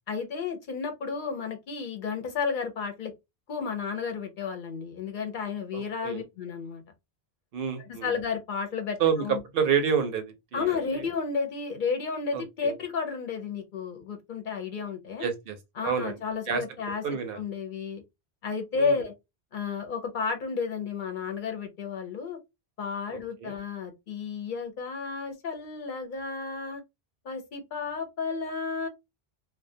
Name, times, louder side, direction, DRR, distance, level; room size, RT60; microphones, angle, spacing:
voice 1, 0.1-3.1 3.5-6.8 7.8-9.4 10.5-15.3 15.8-17.0 17.3-18.0 18.4-19.1 19.5-22.4 22.8-26.8 27.2-28.9, left 5 dB, 60° left, 0.7 m, -32 dB
voice 2, 5.7-6.2 7.5-8.1 9.0-11.1 12.3-12.7 15.2-15.6 15.8-16.2 16.5-16.6 17.0-17.4 18.8-19.0 23.1-23.5, right 7 dB, 65° right, 0.8 m, -29 dB
2.3 x 2.2 x 2.5 m
omnidirectional pair, 1.0 m